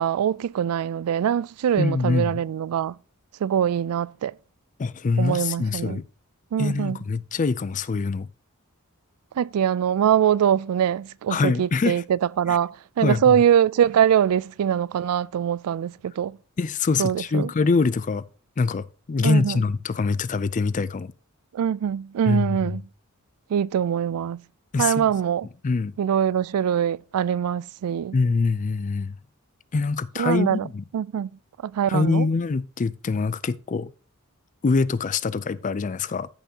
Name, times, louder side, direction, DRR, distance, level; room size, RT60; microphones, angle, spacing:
voice 1, 0.0-3.0 3.4-4.3 5.2-6.0 6.5-7.0 9.4-16.4 17.0-17.5 19.2-19.6 21.5-22.8 23.5-24.4 24.8-25.5 26.0-28.2 30.2-30.7 30.9-31.3 31.6-32.3, right 9 dB, 80° right, 0.3 m, -23 dB
voice 2, 1.8-2.4 4.8-6.0 6.6-8.3 11.3-12.0 12.5-12.6 13.0-13.4 16.6-18.2 18.6-21.1 22.3-22.8 24.7-25.0 25.6-25.9 28.1-29.2 29.7-30.8 31.9-33.9 34.6-36.3, left 4 dB, 35° left, 0.4 m, -24 dB
13.5 x 5.8 x 2.8 m
head